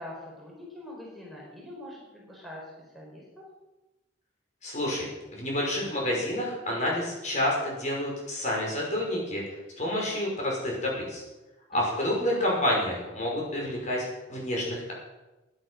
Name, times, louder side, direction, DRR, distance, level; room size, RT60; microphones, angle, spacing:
voice 1, 0.0-3.4 11.7-11.9, left 1 dB, ahead, -4 dB, 4.6 m, -44 dB
voice 2, 4.6-9.4 9.8-11.2 11.7-14.0 14.3-14.9, left 1 dB, 40° left, -2 dB, 5.8 m, -29 dB
16.0 x 11.0 x 6.6 m, 1.0 s
head